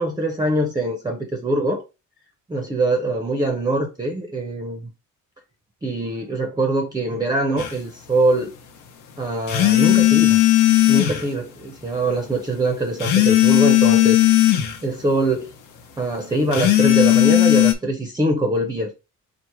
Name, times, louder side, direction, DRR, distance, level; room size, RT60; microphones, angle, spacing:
voice 1, 0.0-1.8 2.5-4.9 5.8-8.5 9.2-10.4 10.9-14.2 14.8-15.5 16.0-18.9, right 2 dB, 15° right, 0.5 m, -23 dB
sound 1, 7.6-7.7 9.5-11.2 13.0-14.8 16.5-17.7, left 14 dB, 85° left, 1.0 m, -16 dB
4.4 x 2.5 x 4.6 m
cardioid pair, 180°, 30 cm